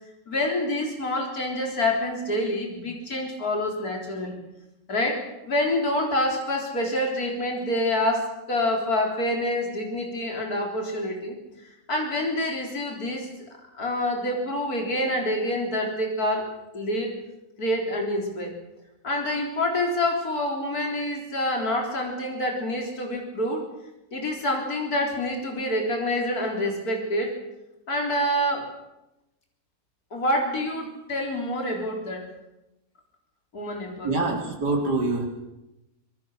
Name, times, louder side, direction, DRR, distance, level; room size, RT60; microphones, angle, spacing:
voice 1, 0.3-4.4 4.9-11.3 11.9-13.3 13.8-16.5 16.7-17.1 17.6-18.5 19.0-23.6 24.1-27.3 27.9-28.7 30.1-32.3 33.5-34.3, left 1 dB, 60° left, 1 dB, 4.5 m, -27 dB
voice 2, 34.0-35.3, right 3 dB, 80° right, 2 dB, 4.3 m, -25 dB
26.0 x 21.0 x 6.5 m, 0.93 s
omnidirectional pair, 1.8 m